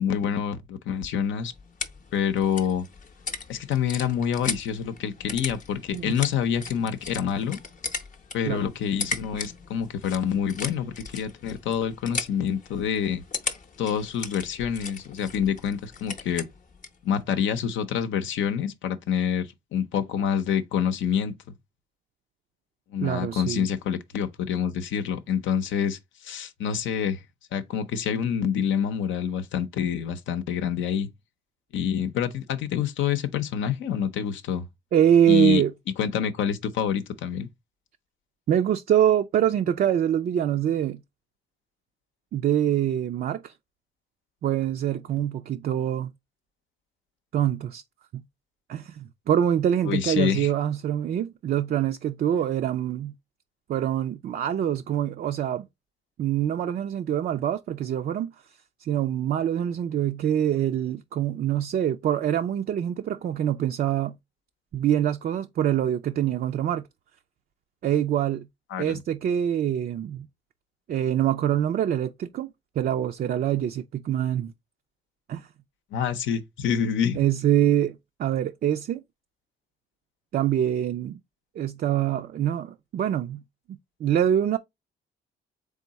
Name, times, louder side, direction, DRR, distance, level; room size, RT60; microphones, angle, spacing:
voice 1, 0.0-1.5 2.1-2.9 3.5-7.6 8.3-13.2 13.8-16.5 17.0-21.3 22.9-27.2 27.5-31.1 31.7-34.7 35.3-35.6 36.0-37.5 49.8-50.5 68.7-69.0 75.9-77.2, left 8 dB, 75° left, 0.7 m, -27 dB
sound 1, 1.2-17.0, left 5 dB, 40° left, 0.7 m, -37 dB
voice 2, 23.0-23.7 34.9-35.7 38.5-41.0 42.3-43.5 44.4-46.1 47.3-47.8 48.1-48.2 48.7-53.1 53.7-55.7 56.2-58.3 58.8-64.2 64.7-66.8 67.8-68.5 68.8-70.3 70.9-72.5 72.8-74.5 75.3-75.5 77.1-79.0 80.3-81.2 81.6-83.4 83.7-84.6, right 10 dB, 50° right, 0.4 m, -25 dB
3.7 x 3.5 x 4.0 m
cardioid pair, 90°, 20 cm